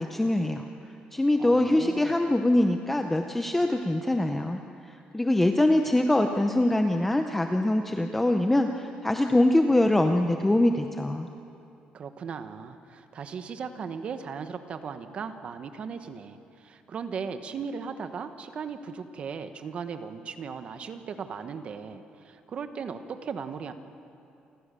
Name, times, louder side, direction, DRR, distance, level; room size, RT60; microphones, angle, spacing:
voice 1, 0.0-11.3, left 1 dB, 10° left, 5 dB, 0.7 m, -24 dB
voice 2, 1.4-2.3 11.9-23.7, right 6 dB, 40° right, 9 dB, 1.2 m, -37 dB
28.0 x 15.0 x 6.9 m, 2.7 s
cardioid pair, 160°, 3 cm